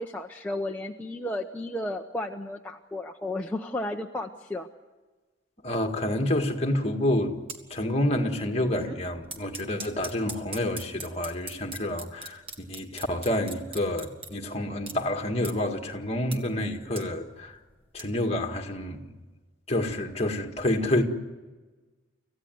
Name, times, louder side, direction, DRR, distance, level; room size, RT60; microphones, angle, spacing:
voice 1, 0.0-4.7, left 1 dB, 10° left, 0.8 m, -33 dB
voice 2, 5.6-7.4 7.7-17.6 17.9-19.1 19.7-21.0, left 1 dB, 30° left, 1.9 m, -28 dB
sound 1, 7.3-7.6 8.0-8.3 8.5-14.3 14.8-14.9 15.4-15.5 16.0-16.4 16.6-18.0, right 3 dB, 25° right, 1.8 m, -40 dB
26.0 x 15.5 x 9.4 m
head